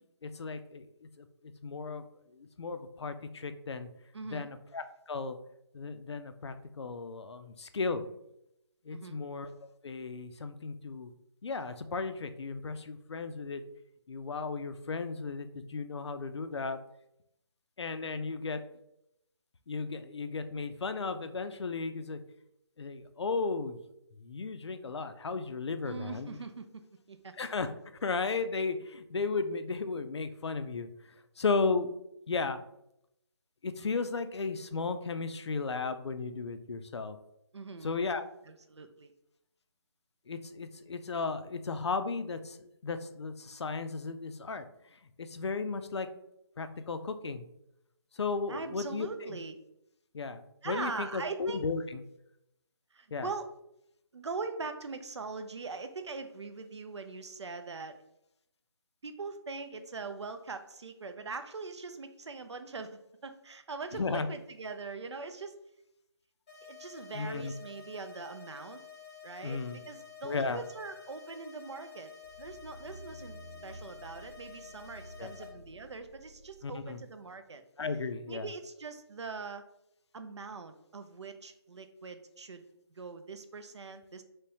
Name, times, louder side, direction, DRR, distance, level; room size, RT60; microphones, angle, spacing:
voice 1, 0.2-0.8 1.2-1.3 1.6-2.0 2.4-3.9 4.3-5.4 5.7-8.0 8.9-9.5 9.8-11.1 11.4-13.6 14.1-16.8 17.8-18.6 19.7-22.2 22.8-23.8 24.2-26.4 27.4-27.7 28.0-30.9 31.4-31.9 32.3-32.6 33.6-37.2 37.8-38.2 40.3-42.6 42.8-44.6 45.2-46.1 46.6-47.5 48.2-49.4 50.1-52.0 53.1-53.3 63.9-64.3 67.2-67.5 69.4-69.8 70.2-70.6 75.2-75.3 76.6-77.0 77.8-78.5, left 4 dB, 75° left, 10 dB, 0.4 m, -35 dB
voice 2, 4.1-4.5 8.9-9.2 25.8-26.8 27.1-27.3 37.5-38.0 38.4-39.1 48.5-49.6 50.6-51.7 52.9-53.5 54.1-58.0 59.0-65.6 66.6-68.8 69.2-72.1 72.4-77.6 78.3-79.7 80.1-82.6 83.0-84.2, right 4 dB, 85° right, 8 dB, 0.5 m, -42 dB
sound 1, 66.5-75.5, left 7 dB, 15° left, 0.7 m, -50 dB
sound 2, 72.2-76.6 77.1-77.2, right 1 dB, 45° right, 0.8 m, -51 dB
3.4 x 3.1 x 2.9 m, 0.81 s
figure-of-eight pair, 165°, 14 cm